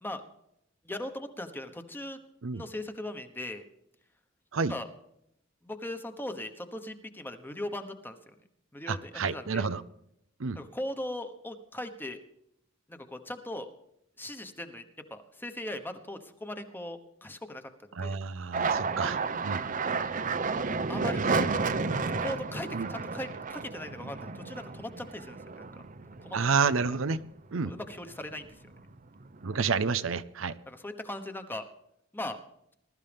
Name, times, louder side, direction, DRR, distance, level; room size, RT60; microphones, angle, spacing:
voice 1, 0.8-2.2 2.5-3.6 4.7-4.9 5.6-8.3 8.7-9.7 10.5-12.2 12.9-13.7 14.2-14.8 15.1-17.6 18.0-18.1 20.9-21.5 22.2-25.6 26.2-26.4 26.6-26.7 27.6-28.5 30.7-31.6 32.1-32.4, left 1 dB, 10° left, 8 dB, 1.2 m, -39 dB
voice 2, 8.9-9.8 10.4-10.6 17.9-19.6 21.3-21.5 22.7-22.9 26.3-27.2 27.5-27.7 29.4-30.5, right 5 dB, 70° right, 13 dB, 0.6 m, -29 dB
sound 1, 18.5-27.3 27.6-28.4 28.7-29.6, right 4 dB, 40° right, 0.7 m, -32 dB
20.5 x 13.0 x 3.5 m, 0.77 s
head